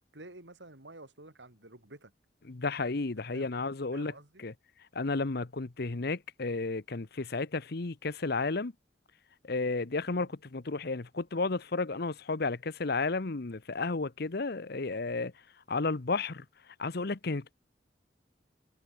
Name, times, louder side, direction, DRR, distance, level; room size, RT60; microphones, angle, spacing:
voice 1, 0.0-2.1 3.3-3.5 3.9-4.4 10.1-10.3, right 2 dB, 90° right, 4.7 m, -50 dB
voice 2, 2.4-4.1 4.4-4.5 4.9-8.7 9.4-15.3 15.7-16.4 16.8-17.5, left 3 dB, 60° left, 0.9 m, -32 dB
head